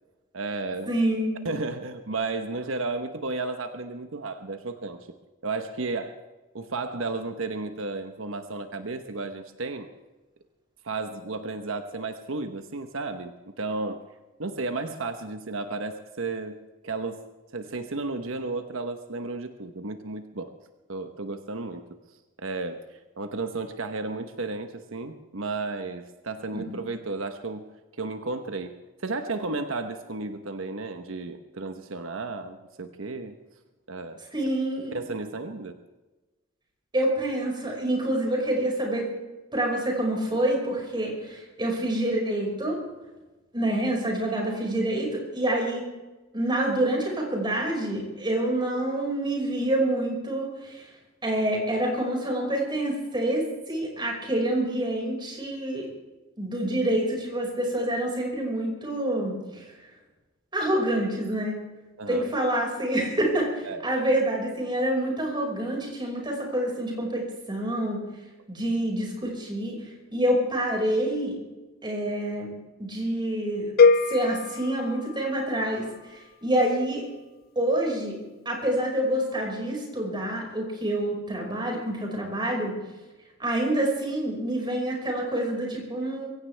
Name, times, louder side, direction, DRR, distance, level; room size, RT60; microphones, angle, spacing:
voice 1, 0.3-0.9 1.4-5.1 5.4-6.2 6.5-9.9 10.8-14.1 14.4-16.6 16.8-17.2 17.5-20.5 20.9-21.9 22.4-27.7 28.0-28.7 29.0-33.4 33.9-34.2 34.9-35.8 62.0-62.3 63.6-63.8, right 3 dB, 90° right, 7 dB, 1.1 m, -33 dB
voice 2, 0.9-1.5 26.5-26.9 34.3-35.0 36.9-39.1 39.5-42.8 43.5-45.9 46.3-50.9 51.2-55.9 56.4-59.6 60.5-61.6 62.1-68.0 68.5-71.4 71.8-72.5 72.8-73.7 74.1-75.8 76.1-77.0 77.6-78.1 78.5-82.8 83.4-86.3, right 1 dB, 25° right, -1 dB, 5.5 m, -27 dB
sound 1, 73.8-75.9, left 4 dB, 50° left, 0.6 m, -22 dB
23.5 x 16.0 x 3.4 m, 1.2 s
head